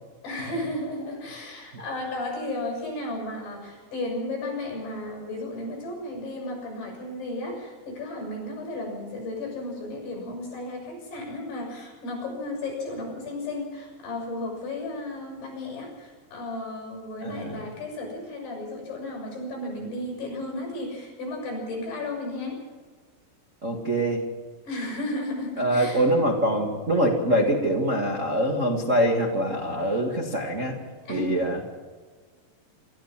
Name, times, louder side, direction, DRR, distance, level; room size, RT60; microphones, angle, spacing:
voice 1, 0.2-22.6 24.7-26.0 31.1-31.3, left 2 dB, 65° left, 0 dB, 9.2 m, -34 dB
voice 2, 17.2-17.6 23.6-24.2 25.6-30.8 31.1-31.6, right 1 dB, 75° right, -1 dB, 0.7 m, -24 dB
26.0 x 14.5 x 7.4 m, 1.5 s
omnidirectional pair, 5.2 m